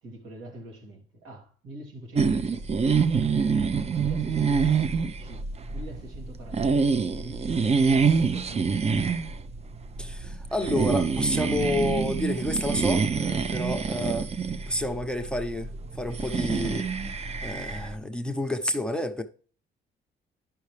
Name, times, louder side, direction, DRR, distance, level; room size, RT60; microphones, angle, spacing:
voice 1, 0.0-3.7 4.0-7.5 7.8-9.0, right 1 dB, 85° right, 3.0 m, -44 dB
sound 1, 2.1-17.9, right 5 dB, 30° right, 0.6 m, -26 dB
voice 2, 10.0-14.3 14.7-16.9 17.4-19.2, left 1 dB, 5° left, 0.9 m, -29 dB
10.5 x 5.7 x 3.3 m
cardioid pair, 90°, 20 cm